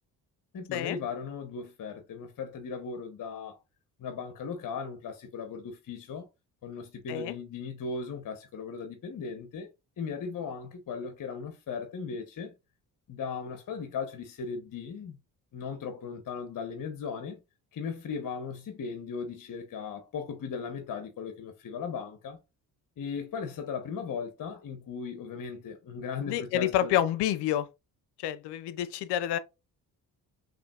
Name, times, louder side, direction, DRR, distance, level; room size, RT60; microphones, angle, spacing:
voice 1, 0.5-3.6 4.0-6.3 6.6-9.7 10.0-12.5 13.1-15.2 15.5-17.4 17.7-22.4 23.0-27.0, left 5 dB, 50° left, 0.9 m, -37 dB
voice 2, 26.3-27.7 28.2-29.4, left 11 dB, 80° left, 0.6 m, -28 dB
5.0 x 3.0 x 2.3 m
supercardioid pair, 65°, 41 cm